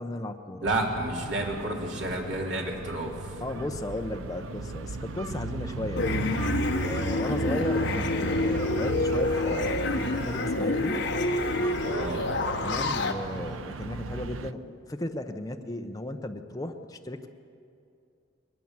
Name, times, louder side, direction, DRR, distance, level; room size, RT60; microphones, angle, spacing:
voice 1, 0.0-0.7 3.4-6.2 6.8-11.0 12.6-17.3, left 1 dB, 15° left, 5 dB, 0.8 m, -35 dB
voice 2, 0.6-3.3 7.5-7.7 11.8-12.3, right 1 dB, 60° right, -1 dB, 3.2 m, -31 dB
sound 1, 0.6-14.5, right 4 dB, 80° right, 0.6 m, -36 dB
sound 2, 6.0-13.1, left 2 dB, 60° left, 1.3 m, -28 dB
21.5 x 19.0 x 7.4 m, 2.5 s
head